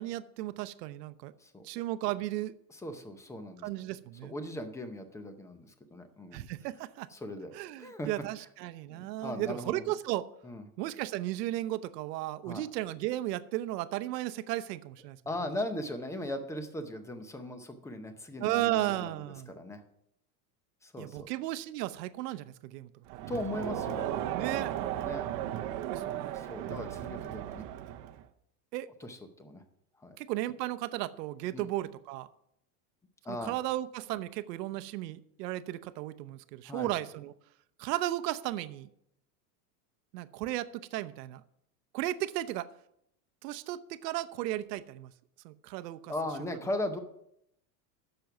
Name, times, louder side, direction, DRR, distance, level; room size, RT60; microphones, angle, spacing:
voice 1, 0.0-1.3 1.6-2.5 3.6-4.3 6.3-7.1 7.5-10.3 10.8-15.2 18.4-19.5 21.0-22.9 24.3-24.7 25.8-26.4 28.7-28.9 30.2-32.3 33.3-37.3 37.8-38.9 40.1-41.4 41.9-42.7 43.4-45.1 45.4-46.1, right 15 dB, 80° right, 13 dB, 0.8 m, -35 dB
voice 2, 2.7-3.7 4.2-6.4 7.1-7.5 7.8-8.1 8.9-9.9 10.4-10.7 12.5-12.6 15.3-19.1 19.5-19.8 20.8-21.3 23.3-24.1 24.3-24.7 25.0-25.3 26.3-27.7 29.0-29.6 30.0-30.2 31.5-31.7 33.2-33.5 36.7-36.9 46.1-47.0, left 1 dB, 5° left, 8 dB, 0.6 m, -38 dB
Crowd, 23.1-28.3, right 11 dB, 40° right, 0.7 m, -35 dB
10.5 x 6.9 x 5.8 m, 0.76 s
supercardioid pair, 155°, 48 cm